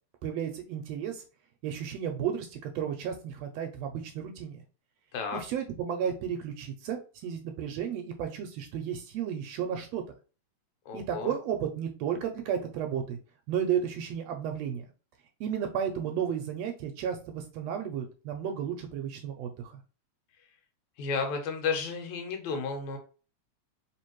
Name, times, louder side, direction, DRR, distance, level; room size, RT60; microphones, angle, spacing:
voice 1, 0.2-1.2 1.6-4.6 5.3-10.0 10.9-13.2 13.5-14.9 15.4-19.8, right 8 dB, 80° right, 4 dB, 1.6 m, -33 dB
voice 2, 10.9-11.3 21.0-23.0, left 5 dB, 80° left, 3 dB, 2.2 m, -32 dB
4.3 x 3.2 x 3.0 m, 0.36 s
omnidirectional pair, 3.3 m